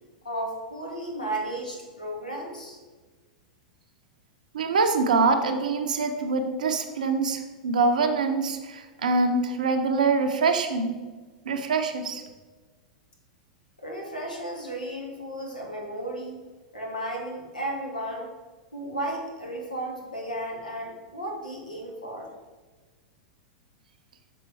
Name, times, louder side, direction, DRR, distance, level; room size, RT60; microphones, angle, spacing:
voice 1, 0.2-2.8 13.8-16.3 16.7-18.3 18.7-22.3, right 1 dB, 90° left, -1 dB, 1.3 m, -34 dB
voice 2, 4.5-11.0 11.5-12.2, right 4 dB, 70° right, 5 dB, 0.6 m, -24 dB
6.3 x 3.6 x 4.4 m, 1.3 s
figure-of-eight pair, 95°, 4 cm